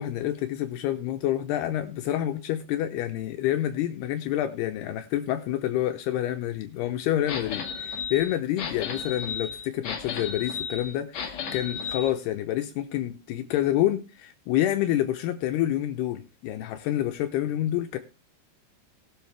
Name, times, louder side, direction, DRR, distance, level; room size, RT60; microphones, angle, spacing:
voice 1, 0.0-18.0, left 12 dB, 80° left, 7 dB, 2.8 m, -28 dB
sound 1, 7.3-12.1, left 6 dB, 55° left, 2.4 m, -34 dB
19.5 x 7.6 x 3.3 m, 0.29 s
omnidirectional pair, 4.8 m